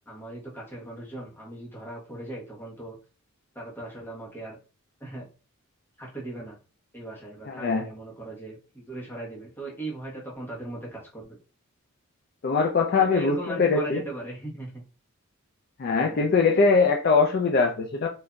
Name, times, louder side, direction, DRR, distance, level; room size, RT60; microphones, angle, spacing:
voice 1, 0.1-3.0 3.5-4.6 5.0-5.2 6.0-6.6 6.9-11.4 12.9-14.8 15.9-16.2, right 1 dB, 10° left, -4 dB, 1.0 m, -38 dB
voice 2, 7.5-7.9 12.4-14.0 15.8-18.1, left 4 dB, 45° left, 2 dB, 0.3 m, -22 dB
3.7 x 2.5 x 2.2 m, 0.35 s
head